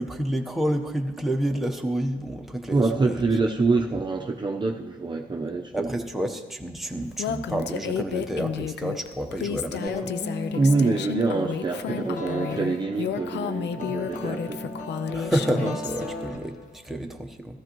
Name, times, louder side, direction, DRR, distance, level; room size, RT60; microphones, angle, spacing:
voice 1, 0.0-3.2 5.7-10.1 15.1-17.6, right 1 dB, ahead, 3 dB, 0.9 m, -29 dB
voice 2, 2.7-5.9 10.5-14.8, right 3 dB, 25° right, 1 dB, 0.7 m, -25 dB
Female speech woman speaking, 7.2-16.0, left 8 dB, 90° left, 0.5 m, -32 dB
sound 1, 9.9-17.0, left 1 dB, 45° left, 1.5 m, -36 dB
15.0 x 14.0 x 3.0 m, 1.2 s
cardioid pair, 115°, 17 cm